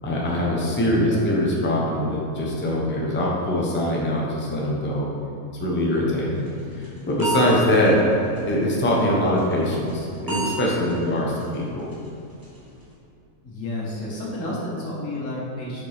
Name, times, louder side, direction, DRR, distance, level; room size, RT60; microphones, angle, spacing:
voice 1, 0.0-5.1 5.6-6.5 7.1-8.0 8.4-11.9, left 1 dB, 10° left, -3 dB, 0.6 m, -23 dB
voice 2, 0.9-1.3 8.2-8.4 13.4-15.9, left 1 dB, 60° left, -5 dB, 1.7 m, -31 dB
sound 1, 6.5-7.5 7.9-8.0 8.4-8.5 8.9-9.0 9.4-9.5 9.9-10.0 10.3-10.5 10.9-11.0 11.4-11.5 11.9-12.1 12.4-12.6, right 4 dB, 15° right, 1.0 m, -29 dB
6.7 x 5.1 x 3.4 m, 2.7 s
omnidirectional pair, 1.5 m